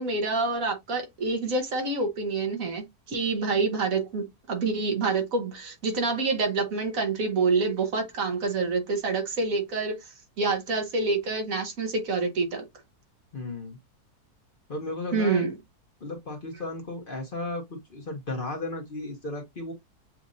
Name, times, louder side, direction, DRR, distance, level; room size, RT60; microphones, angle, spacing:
voice 1, 0.0-10.1 10.4-12.7 15.1-15.5, right 3 dB, 60° right, 1.4 m, -27 dB
voice 2, 13.3-13.8 14.7-15.5 16.0-19.7, left 2 dB, 40° left, 1.1 m, -35 dB
7.2 x 2.6 x 2.6 m
omnidirectional pair, 1.6 m